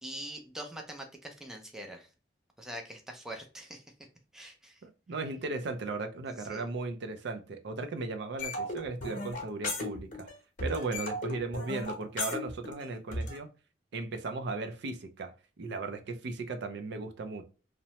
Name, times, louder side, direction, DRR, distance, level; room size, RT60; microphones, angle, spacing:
voice 1, 0.0-2.1 2.6-3.8 4.3-4.8 6.3-6.7, right 1 dB, 5° right, 0.4 m, -43 dB
voice 2, 4.8-10.3 10.6-13.5 13.9-15.3 15.6-17.4, right 3 dB, 65° right, 0.4 m, -36 dB
sound 1, 8.4-10.3 10.6-13.4, left 2 dB, 45° left, 0.8 m, -36 dB
2.8 x 2.1 x 2.8 m
head